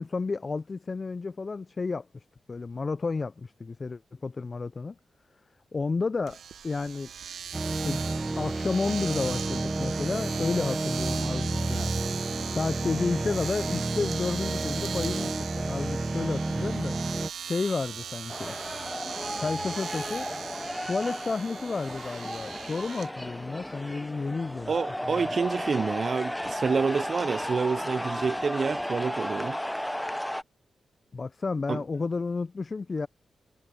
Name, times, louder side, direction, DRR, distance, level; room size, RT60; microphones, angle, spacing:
voice 1, 0.0-2.1 2.5-5.0 5.7-7.1 7.7-8.0 8.3-11.9 12.5-16.9 17.4-18.5 19.4-20.3 20.8-24.7 25.0-25.1 31.1-33.1, left 4 dB, 45° left, 0.6 m, -31 dB
Domestic sounds home sounds, 6.3-23.1, right 8 dB, 80° right, 1.0 m, -39 dB
sound 1, 7.5-17.3, right 2 dB, 25° right, 0.9 m, -31 dB
sound 2, 18.3-30.4, equal, 5° left, 0.7 m, -34 dB
voice 2, 24.7-29.6 31.7-31.8, right 5 dB, 55° right, 0.6 m, -28 dB
cardioid pair, 55°, 0 cm